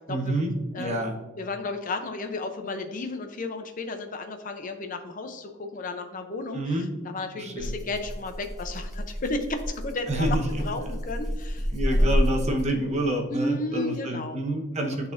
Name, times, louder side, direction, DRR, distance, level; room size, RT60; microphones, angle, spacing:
voice 1, 0.1-1.2 6.5-6.9 7.4-7.7 10.1-10.6 11.7-15.1, right 1 dB, 35° right, 2 dB, 1.0 m, -28 dB
voice 2, 0.7-1.0 1.4-6.8 7.0-12.2 13.3-14.4, left 2 dB, 40° left, 6 dB, 0.6 m, -33 dB
Rattle (instrument), 7.6-12.9, equal, ahead, 1.7 m, -28 dB
11.0 x 4.1 x 2.6 m, 1.2 s
head